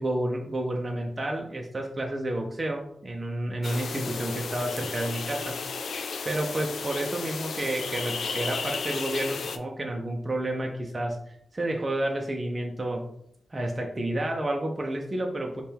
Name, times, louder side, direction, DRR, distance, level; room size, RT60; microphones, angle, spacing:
voice 1, 0.0-5.6 6.3-13.1 13.5-15.6, right 1 dB, 25° right, 1 dB, 0.4 m, -30 dB
sound 1, 3.6-9.6, left 5 dB, 85° left, 0.3 m, -33 dB
4.3 x 2.2 x 3.4 m, 0.72 s
wide cardioid pair, 170°, 0 cm